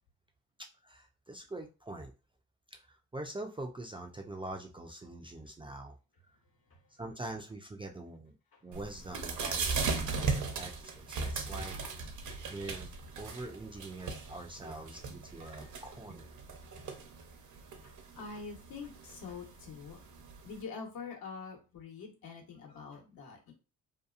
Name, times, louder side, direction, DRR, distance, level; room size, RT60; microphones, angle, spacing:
voice 1, 0.8-2.1 2.7-6.0 6.9-8.3 8.6-11.8 12.5-16.3, right 2 dB, 15° right, 2 dB, 0.4 m, -44 dB
sound 1, 8.7-20.6, right 4 dB, 50° right, 0.7 m, -38 dB
voice 2, 17.8-20.0 20.4-23.5, left 5 dB, 65° left, 1 dB, 1.1 m, -45 dB
2.8 x 2.3 x 2.4 m, 0.31 s
supercardioid pair, 60°, 38 cm